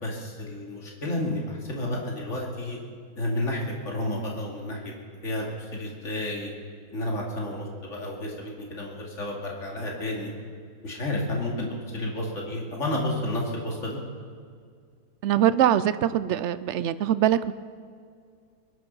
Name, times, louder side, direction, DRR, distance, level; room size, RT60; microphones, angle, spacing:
voice 1, 0.0-2.8 3.2-4.9 5.2-6.5 6.9-10.3 10.8-14.0, left 1 dB, 50° left, -2 dB, 2.9 m, -31 dB
voice 2, 15.2-17.5, right 11 dB, 70° right, 14 dB, 0.7 m, -23 dB
22.0 x 11.0 x 5.5 m, 2.2 s
omnidirectional pair, 1.7 m